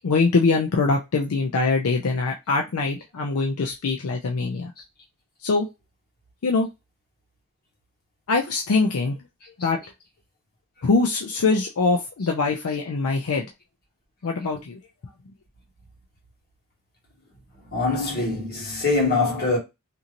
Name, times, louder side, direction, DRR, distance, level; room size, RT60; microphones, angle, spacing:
voice 1, 0.0-4.7 5.4-5.7 6.4-6.7 8.3-9.2 9.6-9.8 10.8-13.5 14.2-14.8, left 3 dB, 80° left, 0.5 m, -23 dB
voice 2, 17.7-19.6, left 3 dB, 45° left, 1.6 m, -23 dB
2.9 x 2.6 x 2.5 m
head